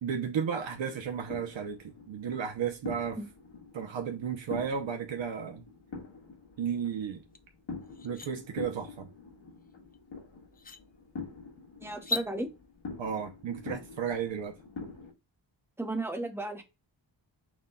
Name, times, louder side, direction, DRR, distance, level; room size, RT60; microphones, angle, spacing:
voice 1, 0.0-3.2 3.7-5.6 6.6-7.2 8.0-9.1 13.0-14.6, right 7 dB, 75° right, 0.8 m, -33 dB
sound 1, 0.6-15.1, left 4 dB, 75° left, 1.7 m, -46 dB
sound 2, 7.3-7.4 7.9-8.3 9.9-10.0 10.5-10.8 11.9-12.3, left 2 dB, 20° left, 0.4 m, -35 dB
voice 2, 11.8-12.5 15.8-16.6, right 2 dB, 5° right, 0.8 m, -34 dB
6.2 x 2.2 x 3.6 m
wide cardioid pair, 145°, 46 cm